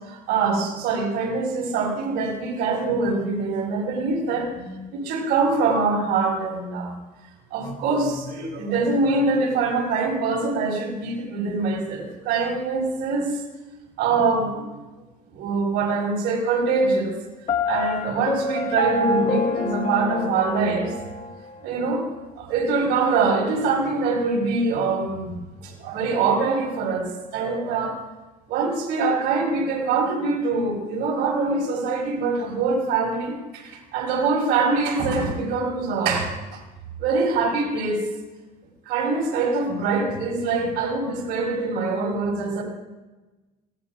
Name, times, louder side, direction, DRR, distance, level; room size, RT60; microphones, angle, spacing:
voice 1, 0.0-7.0 7.5-13.4 14.0-14.7 15.3-17.1 17.7-20.9 21.6-22.1 22.4-25.3 25.6-28.0 28.5-36.6 37.0-38.1 38.8-42.6, right 4 dB, 90° right, -3 dB, 6.3 m, -24 dB
Piano, 17.5-21.3, left 3 dB, 45° left, 1.6 m, -26 dB
24.5 x 19.5 x 2.5 m, 1.2 s
cardioid pair, 110°, 17 cm